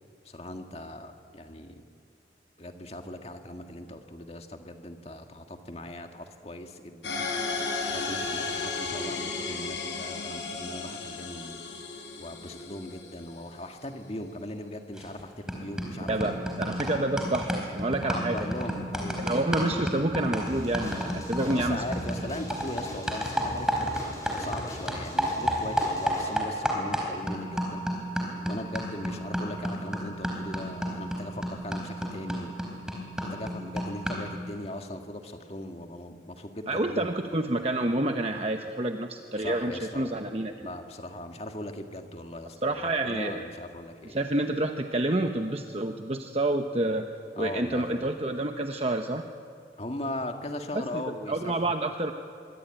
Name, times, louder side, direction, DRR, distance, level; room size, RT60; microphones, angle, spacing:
voice 1, 0.2-1.8 2.6-7.3 7.9-11.6 12.2-16.3 16.9-17.0 18.0-19.3 21.5-23.7 24.1-27.9 28.5-32.5 33.2-37.2 39.4-40.2 40.6-42.6 42.8-44.2 47.4-48.1 49.8-51.5, left 1 dB, 35° left, 4 dB, 1.9 m, -39 dB
sound 1, 7.0-13.6, left 4 dB, 80° left, 5.1 m, -34 dB
sound 2, 15.0-15.2 15.5-24.6 24.9-34.4, equal, 5° right, 4.2 m, -32 dB
voice 2, 16.1-18.5 19.2-21.8 36.7-40.7 42.6-43.4 44.0-47.1 47.4-49.2 50.7-52.1, right 2 dB, 35° right, 5 dB, 1.0 m, -28 dB
sound 3, 20.5-26.3, equal, 20° left, 6.0 m, -40 dB
24.0 x 22.5 x 9.0 m, 2.3 s
head